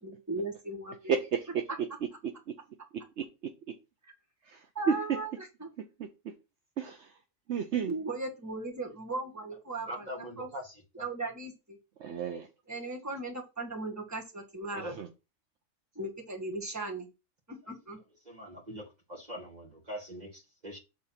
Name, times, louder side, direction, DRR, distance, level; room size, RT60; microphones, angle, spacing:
voice 1, 0.0-1.2 4.0-4.1 4.7-5.7 7.9-10.1 10.4-10.5 11.0-11.8 12.7-14.9 15.9-17.1 17.5-18.0, right 2 dB, 15° right, 1.6 m, -37 dB
voice 2, 1.1-1.6 3.2-3.3 4.5-4.9 6.8-7.1 7.5-7.9 12.0-12.5 15.0-15.1, right 7 dB, 65° right, 1.0 m, -31 dB
voice 3, 9.9-11.0 14.8-15.0 18.2-20.8, equal, 35° right, 2.0 m, -42 dB
6.4 x 3.9 x 5.7 m
omnidirectional pair, 1.3 m